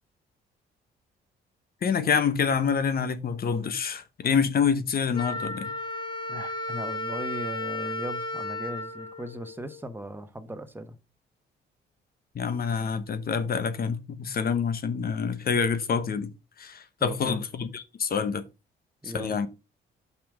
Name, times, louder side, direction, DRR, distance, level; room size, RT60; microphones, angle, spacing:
voice 1, 1.8-5.7 12.3-16.3 16.6-18.4 19.0-19.5, left 6 dB, 50° left, 1.0 m, -27 dB
Wind instrument woodwind instrument, 5.1-9.9, left 2 dB, 25° left, 1.2 m, -34 dB
voice 2, 6.3-11.0 17.0-17.4 19.0-19.4, right 1 dB, 10° right, 1.1 m, -38 dB
5.8 x 5.3 x 4.9 m
cardioid pair, 90°, 20 cm